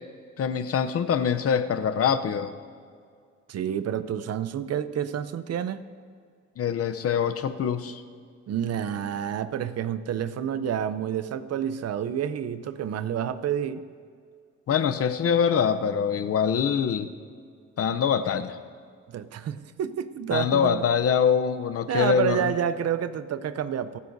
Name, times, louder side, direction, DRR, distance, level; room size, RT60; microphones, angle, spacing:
voice 1, 0.4-2.5 6.6-8.0 14.7-17.1 17.8-18.6 20.3-22.5, left 7 dB, 50° left, 10 dB, 0.7 m, -24 dB
voice 2, 3.5-5.9 8.5-13.8 19.1-20.8 21.9-24.0, right 9 dB, 55° right, 14 dB, 0.6 m, -29 dB
25.0 x 9.5 x 2.7 m, 2.1 s
cardioid pair, 90°, 30 cm